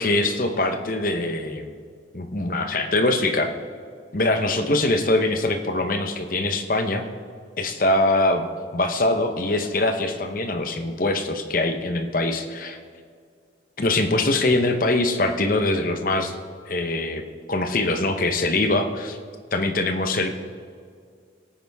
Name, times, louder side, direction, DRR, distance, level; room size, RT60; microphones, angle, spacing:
voice 1, 0.0-1.7 2.1-3.5 4.1-7.0 7.6-8.5 8.7-12.8 13.8-16.3 16.7-17.2 17.5-19.2 19.5-20.3, left 2 dB, 50° left, 6 dB, 0.9 m, -23 dB
17.5 x 9.6 x 3.5 m, 2.1 s
head